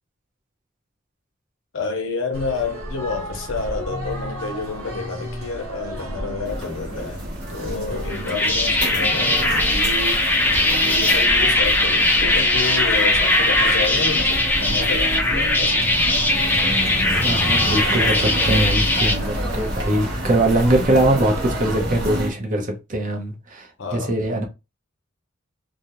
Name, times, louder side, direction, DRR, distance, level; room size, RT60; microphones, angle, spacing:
voice 1, 1.7-7.2 7.5-10.3 10.8-15.9 16.8-17.0 23.8-24.1, left 4 dB, 65° left, 0.6 m, -29 dB
sound 1, 2.3-21.8, right 1 dB, 90° right, 0.8 m, -32 dB
sound 2, 6.5-22.3, equal, 55° right, 1.0 m, -29 dB
sound 3, 8.1-19.2, left 2 dB, 10° left, 0.4 m, -20 dB
voice 2, 17.2-24.4, right 1 dB, 40° right, 0.6 m, -22 dB
2.4 x 2.0 x 2.9 m
head